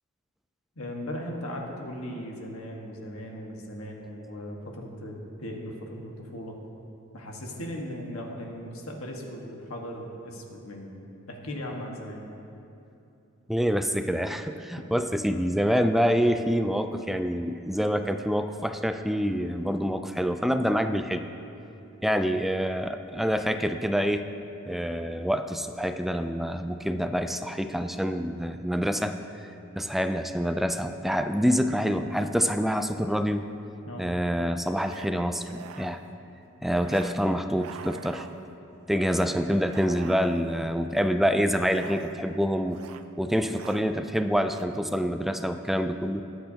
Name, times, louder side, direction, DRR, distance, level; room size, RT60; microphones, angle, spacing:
voice 1, 0.7-6.6 7.1-11.0 11.3-12.2 14.8-14.9 33.8-34.1, equal, 80° left, 0 dB, 1.4 m, -38 dB
voice 2, 13.5-21.2 22.0-24.3 24.7-29.1 29.8-33.4 34.0-36.0 36.6-38.3 38.9-42.8 43.2-46.2, equal, ahead, 8 dB, 0.3 m, -26 dB
sound 1, 32.9-33.0 34.8-35.1 35.4-36.1 36.8-37.2 37.5-38.6 39.1-39.3 39.7-40.7 41.6-42.4 42.7-43.1 43.4-43.9 44.4-44.6, right 6 dB, 90° right, 0.5 m, -45 dB
22.0 x 7.9 x 2.8 m, 2.8 s
head